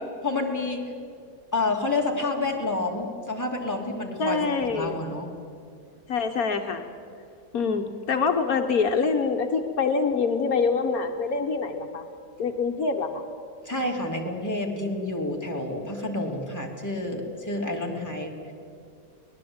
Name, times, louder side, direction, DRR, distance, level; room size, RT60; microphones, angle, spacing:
voice 1, 0.2-0.9 1.5-5.3 13.6-18.5, left 2 dB, 10° left, 0 dB, 2.6 m, -29 dB
voice 2, 4.2-5.0 6.1-6.8 7.5-12.0 12.4-13.2, left 5 dB, 70° left, 5 dB, 1.5 m, -25 dB
23.0 x 19.5 x 8.8 m, 2.4 s
omnidirectional pair, 1.6 m